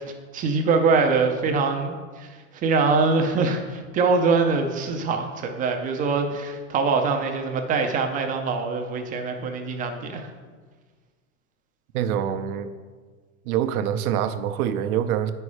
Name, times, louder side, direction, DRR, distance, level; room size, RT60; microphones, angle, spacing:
voice 1, 0.3-2.3 2.6-10.3, right 4 dB, 20° right, 4 dB, 0.4 m, -23 dB
voice 2, 11.9-12.7 13.5-15.3, right 9 dB, 80° right, 10 dB, 0.7 m, -25 dB
8.5 x 5.5 x 4.8 m, 1.5 s
supercardioid pair, 145°, 43 cm